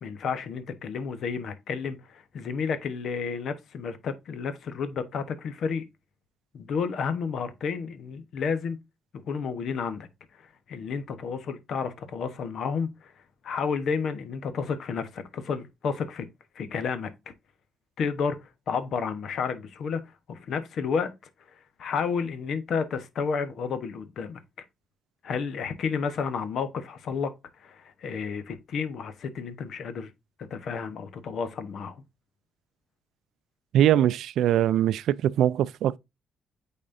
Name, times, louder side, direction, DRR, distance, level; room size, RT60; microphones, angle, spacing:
voice 1, 0.0-5.8 6.5-8.8 9.1-10.1 10.4-13.1 13.4-16.3 16.5-17.1 18.0-20.0 20.3-21.1 21.8-24.6 25.2-27.3 27.6-30.1 30.5-32.0, left 5 dB, 65° left, 1.0 m, -31 dB
voice 2, 33.7-36.0, right 11 dB, 80° right, 0.3 m, -22 dB
8.6 x 4.2 x 2.6 m
cardioid pair, 90°, 0 cm